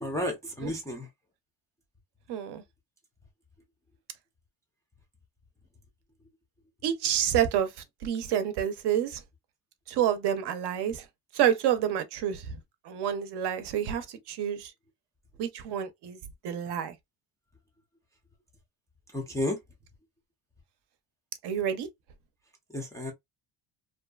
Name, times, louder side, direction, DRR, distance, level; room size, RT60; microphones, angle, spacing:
voice 1, 0.0-1.1 19.1-19.6 22.7-23.1, left 1 dB, 10° left, 0.3 m, -32 dB
voice 2, 2.3-2.6 6.8-7.7 8.0-9.2 9.9-11.0 11.3-12.5 12.9-14.7 15.4-16.2 16.4-16.9 21.4-21.9, right 10 dB, 60° right, 0.6 m, -28 dB
2.6 x 2.3 x 2.2 m
cardioid pair, 155°, 45 cm